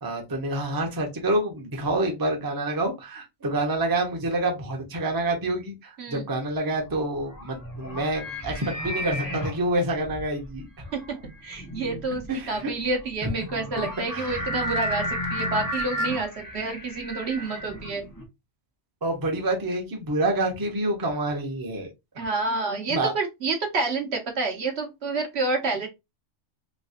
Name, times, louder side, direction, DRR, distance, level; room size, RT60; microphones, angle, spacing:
voice 1, 0.0-10.7 12.3-12.7 13.5-14.4 17.4-17.6 19.0-21.9 22.2-22.3 22.9-23.1, right 2 dB, 20° right, 1 dB, 0.6 m, -27 dB
sound 1, 6.8-18.2, equal, 20° left, 0.8 m, -33 dB
voice 2, 10.9-18.1 22.2-25.9, right 3 dB, 60° right, 3 dB, 0.9 m, -29 dB
3.1 x 2.9 x 2.7 m, 0.22 s
omnidirectional pair, 1.4 m